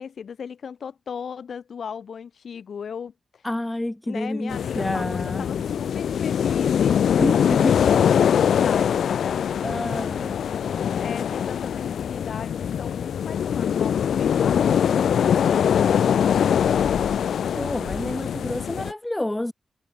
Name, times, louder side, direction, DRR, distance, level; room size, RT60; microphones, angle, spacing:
voice 1, 0.0-3.5 4.1-10.4 11.0-17.1, left 7 dB, 55° left, 4.7 m, -37 dB
voice 2, 3.4-5.5 7.2-7.7 9.6-10.4 17.5-19.5, left 1 dB, 10° left, 0.4 m, -28 dB
sound 1, 4.5-18.9, left 8 dB, 80° left, 1.7 m, -22 dB
wide cardioid pair, 175°, 0 cm